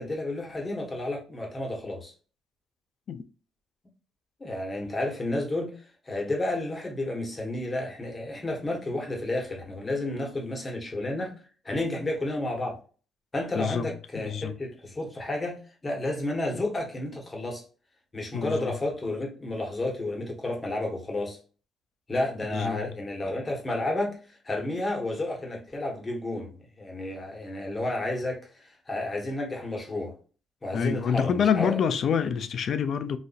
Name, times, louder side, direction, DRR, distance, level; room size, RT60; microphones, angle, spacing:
voice 1, 0.0-2.1 4.4-5.7 6.0-11.3 11.6-12.8 13.3-15.6 15.8-17.6 18.1-21.4 22.1-30.1 30.6-31.8, left 1 dB, 25° left, 1.2 m, -31 dB
voice 2, 13.6-14.6 18.3-18.8 22.5-22.9 30.7-33.2, left 7 dB, 60° left, 0.4 m, -27 dB
4.0 x 2.5 x 2.4 m
cardioid pair, 115°, 0 cm